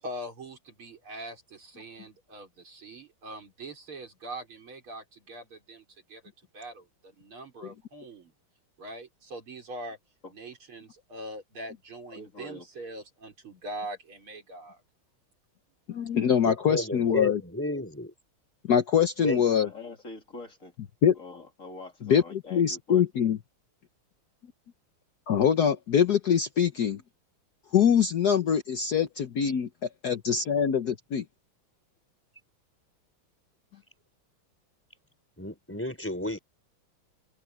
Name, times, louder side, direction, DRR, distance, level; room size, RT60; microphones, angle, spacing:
voice 1, 0.0-6.2 6.5-8.3 8.8-10.0 10.3-14.8, right 1 dB, 80° right, 5.7 m, -42 dB
voice 2, 12.1-12.7 19.3-20.7 21.1-23.0, left 3 dB, 35° left, 3.1 m, -44 dB
voice 3, 15.9-17.4 18.6-19.7 21.0-21.1 22.0-23.4 25.3-27.0 27.7-29.7 30.0-31.2, left 8 dB, 55° left, 1.4 m, -24 dB
voice 4, 16.4-18.1 19.2-19.4 35.4-36.4, left 1 dB, 5° left, 4.5 m, -32 dB
open air
omnidirectional pair, 2.3 m